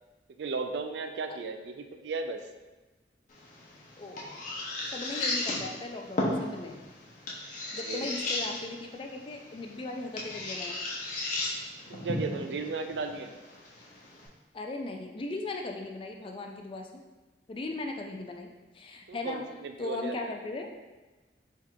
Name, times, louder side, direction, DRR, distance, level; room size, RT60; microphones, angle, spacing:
voice 1, 0.4-2.4 7.8-8.1 11.9-13.3 19.1-20.2, right 4 dB, 70° right, 6 dB, 0.3 m, -35 dB
sound 1, 3.3-14.3, left 2 dB, 45° left, 0.7 m, -36 dB
voice 2, 4.9-6.8 7.7-10.8 14.5-16.9 17.5-18.5 18.7-19.4 19.8-20.7, left 2 dB, 30° left, 3 dB, 0.3 m, -38 dB
3.5 x 2.4 x 4.5 m, 1.2 s
head